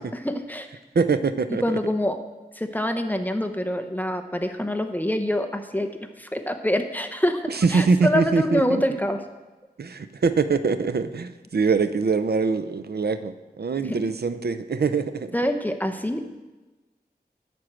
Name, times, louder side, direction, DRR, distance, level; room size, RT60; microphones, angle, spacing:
voice 1, 0.1-0.7 1.5-2.2 2.6-5.9 6.2-7.4 7.7-9.2 13.8-14.0 15.3-16.3, left 1 dB, 10° left, 6 dB, 0.8 m, -25 dB
voice 2, 0.9-1.6 7.6-8.8 9.8-15.3, right 4 dB, 70° right, 11 dB, 0.6 m, -23 dB
11.0 x 4.5 x 7.5 m, 1.2 s
wide cardioid pair, 60°, 17 cm